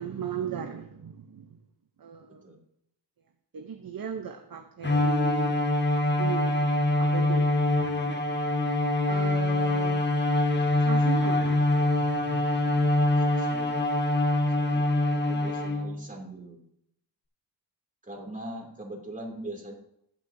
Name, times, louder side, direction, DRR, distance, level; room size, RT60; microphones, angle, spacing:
voice 1, 0.0-1.6 2.0-2.5 3.5-5.5 6.2-7.5 9.1-10.1 10.8-11.6, right 7 dB, 55° right, 5 dB, 0.8 m, -37 dB
Bowed string instrument, 4.8-16.0, left 1 dB, 25° left, 1.2 m, -24 dB
voice 2, 13.2-13.8 14.5-14.9 15.3-16.6 18.0-19.7, right 1 dB, 20° right, -1 dB, 2.7 m, -41 dB
17.0 x 6.0 x 2.7 m, 0.76 s
cardioid pair, 70°, 41 cm